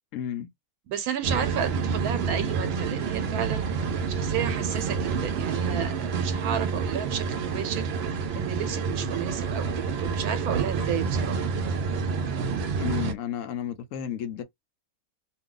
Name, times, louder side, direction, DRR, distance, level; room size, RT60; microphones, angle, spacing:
voice 1, 0.1-0.5 12.8-14.4, left 10 dB, 70° left, 0.9 m, -32 dB
voice 2, 0.9-3.7 4.1-7.9 8.3-11.4, right 9 dB, 85° right, 1.1 m, -32 dB
sound 1, 1.2-13.1, right 5 dB, 60° right, 0.7 m, -28 dB
2.6 x 2.3 x 3.7 m
omnidirectional pair, 1.5 m